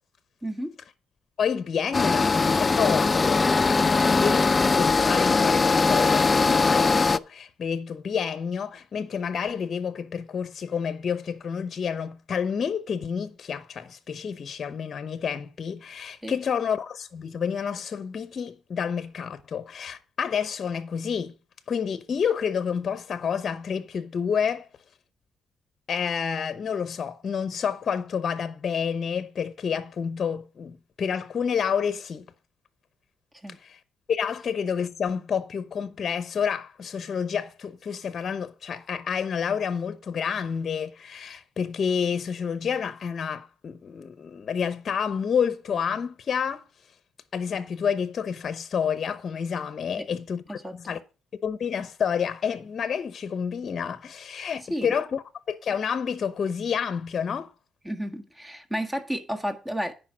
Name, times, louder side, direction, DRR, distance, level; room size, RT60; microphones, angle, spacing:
voice 1, 0.4-0.7 16.2-16.4 33.4-33.6 50.0-50.1 50.5-50.8 54.7-54.9 57.8-59.9, equal, 10° right, 1.7 m, -32 dB
voice 2, 1.4-4.5 4.8-21.3 21.7-24.7 25.9-32.3 33.6-33.8 34.1-46.6 47.3-51.0 51.4-57.5, left 7 dB, 50° left, 0.8 m, -29 dB
sound 1, 1.9-7.2, left 4 dB, 25° left, 0.5 m, -21 dB
10.0 x 5.1 x 6.2 m
cardioid pair, 90°, 0 cm